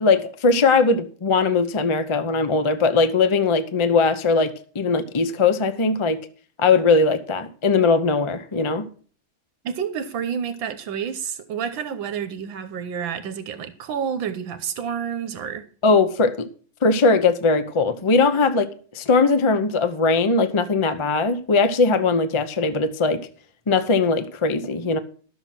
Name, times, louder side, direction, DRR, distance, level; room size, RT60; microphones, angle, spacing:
voice 1, 0.0-6.2 6.6-8.9 15.8-16.5 16.8-23.2 23.7-25.0, left 4 dB, 45° left, 0.3 m, -20 dB
voice 2, 9.6-15.7, right 7 dB, 80° right, 1.6 m, -29 dB
12.5 x 7.0 x 5.9 m
omnidirectional pair, 2.1 m